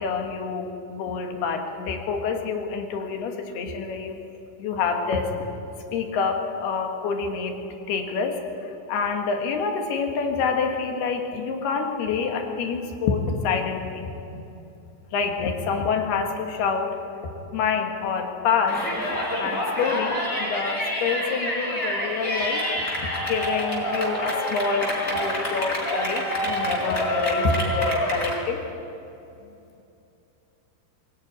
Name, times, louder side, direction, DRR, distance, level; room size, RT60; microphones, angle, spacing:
voice 1, 0.0-4.2 4.6-5.5 5.9-7.6 7.9-14.4 15.1-17.0 17.5-18.8 19.4-22.6 23.0-28.6, left 5 dB, 70° left, 4 dB, 3.6 m, -27 dB
Yell, 18.7-28.4, equal, 20° left, 4.5 m, -27 dB
23.0 x 17.5 x 9.5 m, 2.8 s
omnidirectional pair, 4.9 m